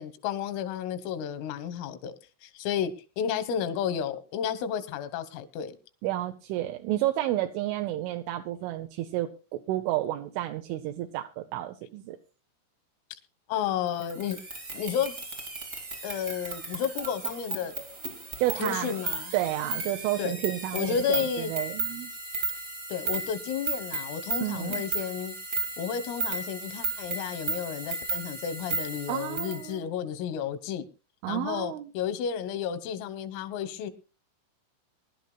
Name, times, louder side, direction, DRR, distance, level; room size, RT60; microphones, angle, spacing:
voice 1, 0.0-2.2 2.4-5.8 13.5-14.4 14.7-15.2 16.0-17.8 18.6-19.3 20.2-20.4 20.7-21.5 22.9-25.4 25.8-30.9 31.3-33.9, left 8 dB, 85° left, 10 dB, 3.8 m, -32 dB
voice 2, 6.0-12.2 18.4-19.0 19.3-22.1 24.4-24.8 29.1-29.8 31.2-31.9, right 14 dB, 80° right, 6 dB, 3.1 m, -31 dB
sound 1, 14.0-29.6, right 3 dB, 40° right, 1.3 m, -35 dB
23.5 x 11.5 x 2.3 m, 0.32 s
omnidirectional pair, 5.8 m